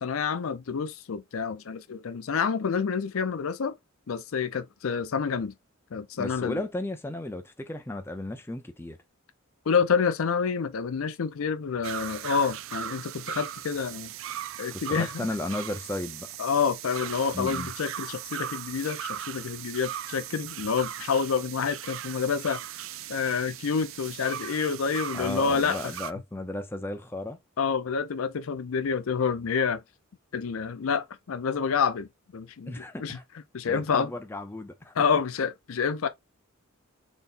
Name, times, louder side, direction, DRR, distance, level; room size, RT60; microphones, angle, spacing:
voice 1, 0.0-3.8 4.1-5.5 5.9-6.6 9.7-14.1 14.6-15.3 16.4-22.6 23.1-25.9 27.6-29.8 30.3-33.2 33.5-34.1 35.0-36.1, left 6 dB, 75° left, 0.5 m, -28 dB
voice 2, 6.2-9.0 14.9-16.3 17.3-17.7 25.1-27.4 32.7-33.2 33.7-34.9, left 1 dB, 10° left, 0.5 m, -34 dB
sound 1, 11.8-26.1, right 10 dB, 65° right, 0.4 m, -38 dB
4.0 x 3.9 x 2.5 m
head